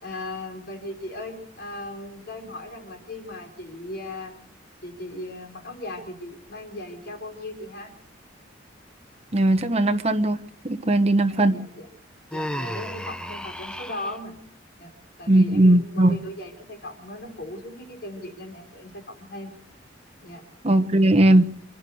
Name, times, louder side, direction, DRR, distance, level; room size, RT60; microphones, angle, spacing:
voice 1, 0.0-4.3 4.8-8.0 11.3-11.9 12.3-14.3 14.8-14.9 15.2-19.5 20.2-20.4, left 1 dB, 60° left, 3 dB, 4.7 m, -37 dB
voice 2, 9.3-10.4 10.6-11.6 15.3-16.2 20.6-21.4, right 1 dB, 35° right, 7 dB, 1.4 m, -18 dB
Human voice, 12.3-14.2, equal, 5° left, 0.8 m, -33 dB
28.5 x 11.5 x 8.0 m, 0.66 s
head